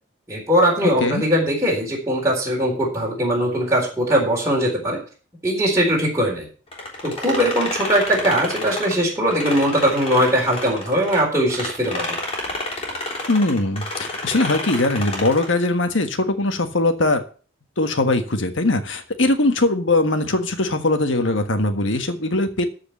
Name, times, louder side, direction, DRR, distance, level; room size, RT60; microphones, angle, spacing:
voice 1, 0.3-5.0 5.4-6.5 7.0-12.2, equal, 15° right, -4 dB, 4.0 m, -20 dB
sound 1, 6.7-11.2 11.5-15.6, left 2 dB, 30° left, 3.7 m, -30 dB
voice 2, 13.3-17.2 17.8-22.7, left 2 dB, 75° left, 7 dB, 1.6 m, -21 dB
14.0 x 5.0 x 7.2 m, 0.39 s
head